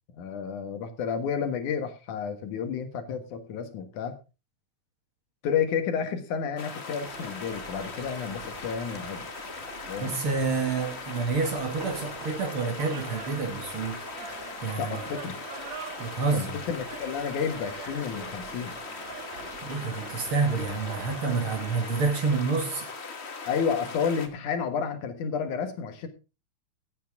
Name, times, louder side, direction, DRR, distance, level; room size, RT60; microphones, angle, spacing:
voice 1, 0.1-4.1 5.4-9.3 9.9-10.1 14.8-15.4 16.3-18.7 23.5-26.1, left 7 dB, 85° left, 3.0 m, -31 dB
sound 1, 6.6-24.3, left 4 dB, 45° left, 0.8 m, -40 dB
sound 2, 7.0-22.1, right 7 dB, 65° right, 2.8 m, -44 dB
voice 2, 10.0-14.0 14.6-15.0 16.0-16.6 19.6-22.8, right 4 dB, 50° right, 2.5 m, -28 dB
15.5 x 9.2 x 3.6 m
omnidirectional pair, 3.4 m